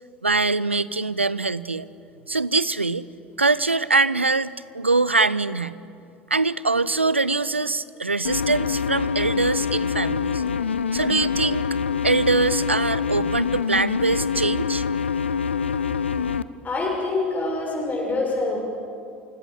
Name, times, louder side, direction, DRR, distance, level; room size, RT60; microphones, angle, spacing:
voice 1, 0.2-1.9 2.3-3.0 3.4-5.8 6.3-10.4 10.9-11.7 12.0-14.8, right 3 dB, 85° right, 18 dB, 0.5 m, -23 dB
sound 1, 8.2-16.4, left 6 dB, 80° left, 0.5 m, -25 dB
voice 2, 16.6-18.6, left 3 dB, 25° left, -1 dB, 6.0 m, -25 dB
29.0 x 17.0 x 7.8 m, 2.5 s
figure-of-eight pair, 70°, 6 cm